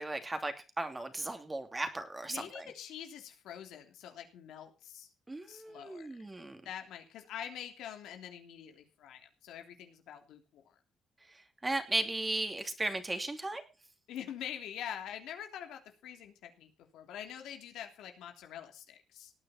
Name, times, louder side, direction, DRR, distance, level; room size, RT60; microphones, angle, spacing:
voice 1, 0.0-2.7 5.3-6.6 11.6-13.6, right 2 dB, 20° right, 7 dB, 2.8 m, -36 dB
voice 2, 2.3-5.1 5.5-6.3 6.6-10.7 14.1-19.3, left 9 dB, 85° left, 5 dB, 3.1 m, -45 dB
18.0 x 9.3 x 4.3 m, 0.31 s
cardioid pair, 90°, 0 cm